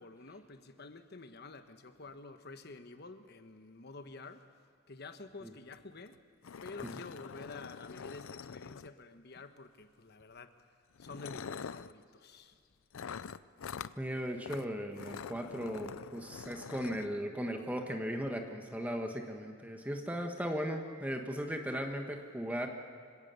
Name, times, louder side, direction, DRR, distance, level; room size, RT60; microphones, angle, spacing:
voice 1, 0.0-4.4 4.9-6.2 6.6-10.5 11.0-12.6, left 3 dB, 50° left, 9 dB, 1.2 m, -49 dB
sound 1, 5.7-5.8 6.1-6.2 6.4-9.2 10.2-10.4 11.0-11.9 12.9-14.0 14.4-14.6 14.9-17.1, left 6 dB, 85° left, 0.5 m, -45 dB
voice 2, 14.0-22.7, equal, 10° right, 3 dB, 1.2 m, -37 dB
26.0 x 17.0 x 6.9 m, 2.3 s
head